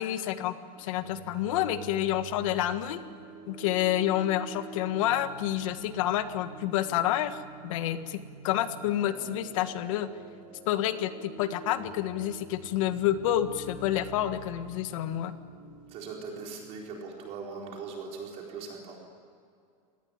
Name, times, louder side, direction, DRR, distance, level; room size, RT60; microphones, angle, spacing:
voice 1, 0.0-3.0 3.5-10.1 10.7-15.3, left 12 dB, 60° left, 10 dB, 1.6 m, -29 dB
sound 1, 0.8-16.8, right 4 dB, 60° right, 6.0 m, -47 dB
voice 2, 15.9-19.0, right 4 dB, 35° right, 0 dB, 4.3 m, -40 dB
26.5 x 18.5 x 9.8 m, 2.3 s
supercardioid pair, 175°, 19 cm